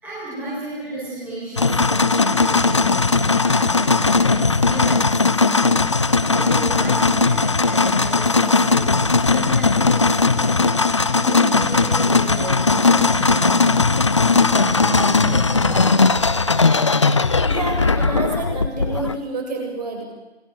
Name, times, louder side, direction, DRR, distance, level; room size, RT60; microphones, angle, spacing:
voice 1, 0.0-5.6 6.3-10.7 11.2-16.5, right 1 dB, 5° right, -8 dB, 4.5 m, -32 dB
sound 1, 1.6-19.2, left 4 dB, 25° left, 0.8 m, -18 dB
voice 2, 17.5-20.0, right 3 dB, 35° right, 1 dB, 7.6 m, -28 dB
27.5 x 20.5 x 7.8 m, 1.0 s
figure-of-eight pair, 155°, 34 cm